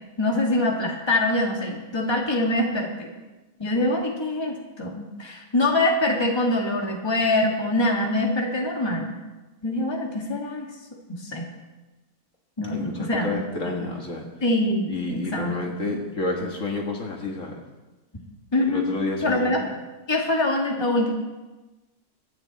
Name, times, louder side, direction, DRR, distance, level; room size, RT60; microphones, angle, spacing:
voice 1, 0.2-3.1 3.6-9.2 9.6-10.7 11.1-11.5 12.6-13.7 14.4-15.7 18.5-18.9 19.2-19.6 20.1-21.1, left 1 dB, 15° left, -1 dB, 2.0 m, -24 dB
voice 2, 12.7-14.2 14.9-17.6 18.7-19.5, left 2 dB, 55° left, 0 dB, 2.2 m, -30 dB
24.0 x 9.8 x 4.2 m, 1.1 s
omnidirectional pair, 1.6 m